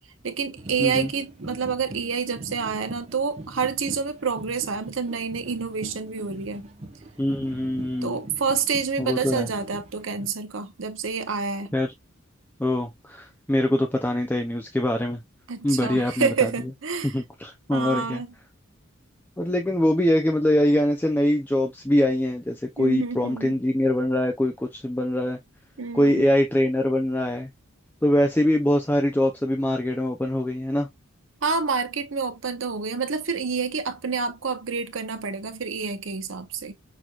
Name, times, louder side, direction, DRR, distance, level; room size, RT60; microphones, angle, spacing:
voice 1, 0.2-6.6 8.0-11.7 15.5-17.2 17.7-18.3 22.8-23.5 25.8-26.3 31.4-36.7, right 5 dB, 70° right, 0.8 m, -28 dB
sound 1, 0.6-10.3, right 1 dB, 35° right, 0.8 m, -43 dB
voice 2, 7.2-8.2 9.0-9.5 11.7-11.9 12.6-15.2 15.6-16.5 17.1-18.2 19.4-25.4 25.9-27.5 28.0-30.9, left 1 dB, 10° left, 0.5 m, -23 dB
6.1 x 2.9 x 2.4 m
head